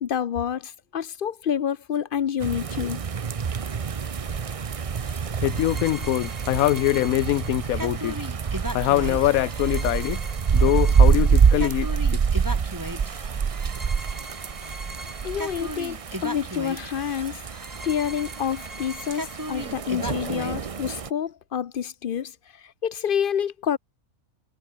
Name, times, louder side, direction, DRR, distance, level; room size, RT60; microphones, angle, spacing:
voice 1, 0.0-3.0 14.7-14.8 15.2-22.3 22.6-23.8, left 8 dB, 55° left, 0.6 m, -28 dB
sound 1, 2.4-21.1, right 6 dB, 45° right, 0.4 m, -26 dB
sound 2, 5.0-20.7, equal, 10° right, 7.5 m, -38 dB
voice 2, 5.4-8.2 8.7-10.2 10.5-12.2, left 15 dB, 75° left, 1.0 m, -23 dB
omnidirectional pair, 1.5 m